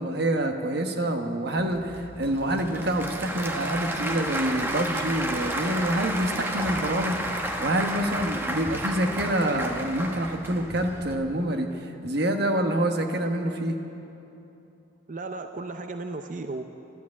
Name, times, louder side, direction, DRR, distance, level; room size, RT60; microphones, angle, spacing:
voice 1, 0.0-7.2 7.6-13.8, right 1 dB, 55° right, 5 dB, 1.2 m, -27 dB
Applause / Crowd, 1.6-11.1, right 1 dB, 10° right, 1.0 m, -32 dB
voice 2, 15.1-16.6, right 3 dB, 40° right, 7 dB, 0.6 m, -35 dB
13.0 x 12.0 x 8.5 m, 2.9 s
head